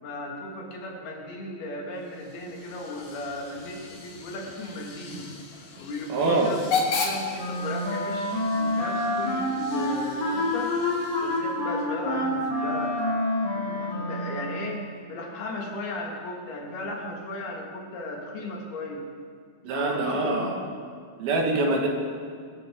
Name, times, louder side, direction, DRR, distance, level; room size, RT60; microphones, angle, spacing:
voice 1, 0.0-5.3 5.8-10.7 11.2-13.0 13.5-19.1 19.7-20.4, left 1 dB, 85° left, -1 dB, 4.2 m, -36 dB
Hiss / Train / Alarm, 2.0-11.6, left 4 dB, 65° left, 3.2 m, -35 dB
voice 2, 6.1-6.5 19.6-20.6 21.2-21.9, right 2 dB, 75° right, 0 dB, 3.6 m, -24 dB
Wind instrument woodwind instrument, 7.4-14.9, left 1 dB, 45° left, 3.9 m, -28 dB
25.0 x 13.0 x 3.8 m, 2.1 s
omnidirectional pair, 4.3 m